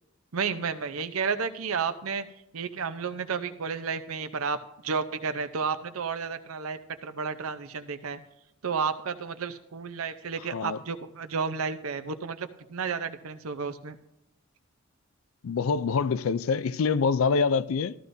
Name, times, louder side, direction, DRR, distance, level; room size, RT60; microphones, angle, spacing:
voice 1, 0.3-2.3 2.5-4.6 4.8-8.2 8.6-14.0, right 5 dB, 85° right, 0.7 m, -32 dB
voice 2, 15.4-18.0, left 5 dB, 70° left, 0.4 m, -25 dB
14.0 x 13.5 x 2.6 m
head